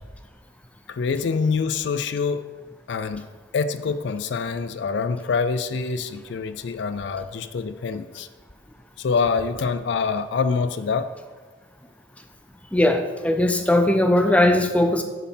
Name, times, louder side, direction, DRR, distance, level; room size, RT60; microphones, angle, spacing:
voice 1, 0.9-2.4 2.9-3.3 3.5-8.3 9.0-11.1, left 5 dB, 60° left, 11 dB, 0.4 m, -25 dB
voice 2, 12.7-15.0, left 1 dB, 5° left, 6 dB, 0.5 m, -19 dB
9.0 x 4.3 x 5.6 m, 1.3 s
head